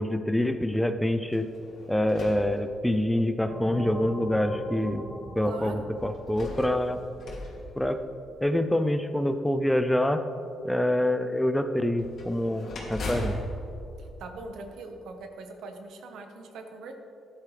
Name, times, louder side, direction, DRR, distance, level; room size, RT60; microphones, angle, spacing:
voice 1, 0.0-1.5 1.9-5.0 5.4-7.0 7.8-8.0 8.4-10.2 10.6-13.4, left 1 dB, 5° left, 9 dB, 0.6 m, -26 dB
sound 1, 1.3-3.3 4.0-4.1 6.0-8.6 11.9-15.0, left 1 dB, 60° left, 2.5 m, -39 dB
sound 2, 3.4-7.8, equal, 15° right, 2.0 m, -40 dB
voice 2, 5.4-5.9 14.0-16.9, right 3 dB, 80° right, 5 dB, 1.2 m, -41 dB
13.5 x 10.5 x 3.3 m, 2.7 s
cardioid pair, 90°, 0 cm